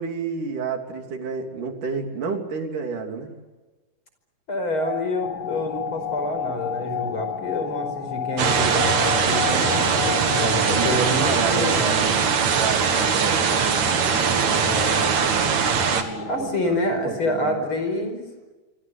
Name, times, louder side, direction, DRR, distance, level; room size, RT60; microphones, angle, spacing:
voice 1, 0.0-3.3 10.4-17.7, right 5 dB, 80° right, 4 dB, 4.7 m, -31 dB
voice 2, 4.5-12.1 14.6-15.1 16.3-18.2, left 1 dB, 40° left, 7 dB, 5.7 m, -27 dB
Singing / Glass, 4.7-11.3, left 10 dB, 60° left, 2.3 m, -32 dB
sound 1, 5.2-16.5, left 7 dB, 75° left, 0.8 m, -36 dB
sound 2, 8.4-16.0, right 6 dB, 60° right, 3.3 m, -21 dB
26.5 x 26.0 x 8.0 m, 1.2 s
omnidirectional pair, 3.7 m